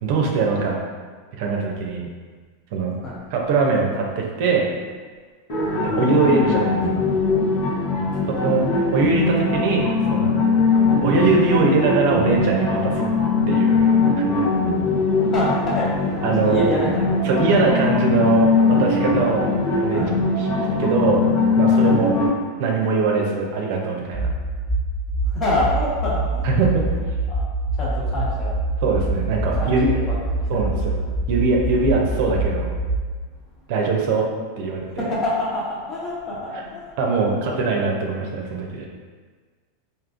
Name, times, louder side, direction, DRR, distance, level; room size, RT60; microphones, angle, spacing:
voice 1, 0.0-0.7 1.4-2.1 2.7-2.9 3.3-4.7 5.8-7.0 8.3-10.4 11.0-13.0 13.5-14.2 16.2-16.7 17.2-19.5 19.8-20.0 20.4-21.3 21.5-22.1 22.6-24.3 26.4-26.9 28.8-29.9 30.5-31.0 31.3-32.7 33.7-34.2 34.6-35.1 37.0-38.9, right 4 dB, 65° right, 0 dB, 0.6 m, -21 dB
sound 1, 5.5-22.3, left 3 dB, 65° left, 0.9 m, -21 dB
voice 2, 15.2-17.6 19.9-20.1 25.2-26.5 27.3-27.4 27.7-28.6 29.5-30.9 35.0-36.9, left 1 dB, 30° left, -6 dB, 1.1 m, -27 dB
sound 2, 24.1-33.0, right 2 dB, 5° right, 0.3 m, -25 dB
3.6 x 2.6 x 2.5 m, 1.5 s
hypercardioid pair, 115°, 0 cm